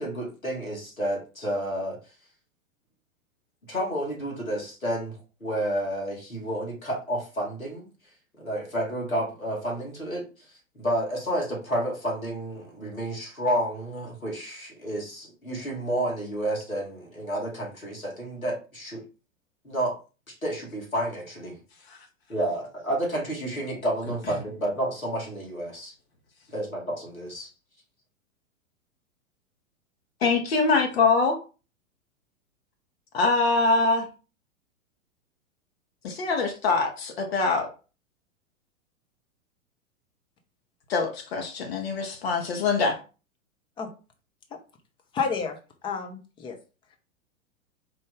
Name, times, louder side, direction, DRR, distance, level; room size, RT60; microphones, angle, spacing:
voice 1, 0.0-2.0 3.7-7.9 8.3-19.0 19.6-20.0 20.3-21.6 22.3-25.9 26.5-27.5, right 1 dB, 85° left, -2 dB, 2.1 m, -30 dB
voice 2, 30.2-31.4 33.1-34.1 36.0-37.7 40.9-43.0, left 4 dB, 50° left, 3 dB, 1.0 m, -23 dB
voice 3, 45.1-46.6 46.9-47.0, left 5 dB, 10° left, 4 dB, 0.6 m, -31 dB
4.5 x 2.5 x 3.7 m, 0.33 s
figure-of-eight pair, 105°, 40 cm